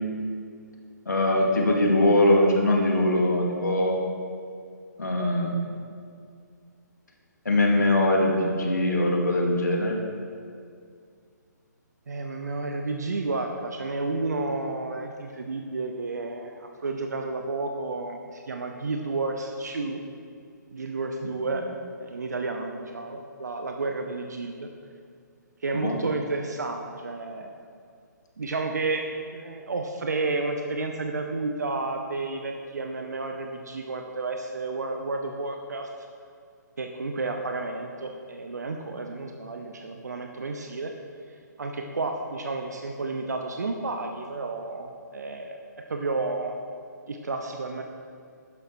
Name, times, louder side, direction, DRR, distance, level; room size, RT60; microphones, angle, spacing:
voice 1, 1.1-4.0 5.0-5.6 7.5-10.0 25.7-26.0, left 1 dB, 70° left, 0 dB, 2.4 m, -22 dB
voice 2, 12.1-20.0 20.7-21.7 22.0-24.7 25.6-27.5 28.4-35.9 36.8-40.9 41.6-46.6 47.1-47.8, right 3 dB, 65° right, 4 dB, 0.9 m, -31 dB
12.5 x 10.0 x 4.6 m, 2.2 s
figure-of-eight pair, 135°, 10 cm